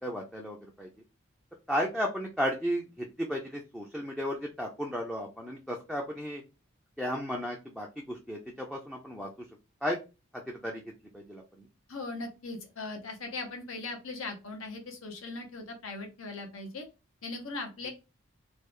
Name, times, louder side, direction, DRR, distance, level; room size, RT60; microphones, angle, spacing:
voice 1, 0.0-0.9 1.7-6.4 7.0-9.3 9.8-10.0 10.3-10.8 11.1-11.7, equal, ahead, -1 dB, 0.4 m, -34 dB
voice 2, 11.9-16.9 17.2-17.9, left 3 dB, 85° left, 4 dB, 1.0 m, -39 dB
3.2 x 2.4 x 3.5 m, 0.29 s
head